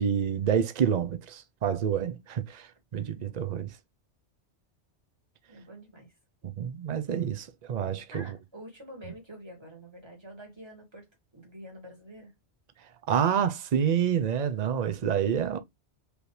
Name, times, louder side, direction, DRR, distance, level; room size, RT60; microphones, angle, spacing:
voice 1, 0.0-3.7 6.4-8.3 13.1-15.6, right 8 dB, 45° right, 0.7 m, -28 dB
voice 2, 5.5-6.1 8.1-11.1 11.3-12.3, equal, 25° right, 2.3 m, -47 dB
5.0 x 3.3 x 3.2 m
omnidirectional pair, 1.2 m